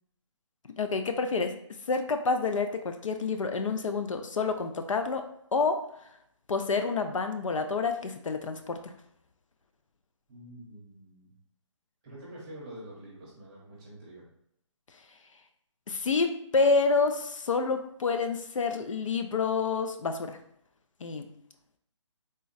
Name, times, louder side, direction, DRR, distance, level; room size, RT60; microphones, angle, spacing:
voice 1, 0.8-1.5 1.9-5.9 6.5-8.9 15.9-20.4 21.0-21.3, left 4 dB, 80° left, 7 dB, 0.5 m, -28 dB
voice 2, 10.3-11.3 12.0-14.3, right 1 dB, 15° right, -6 dB, 0.9 m, -46 dB
3.7 x 2.1 x 3.9 m, 0.74 s
hypercardioid pair, 170°, 16 cm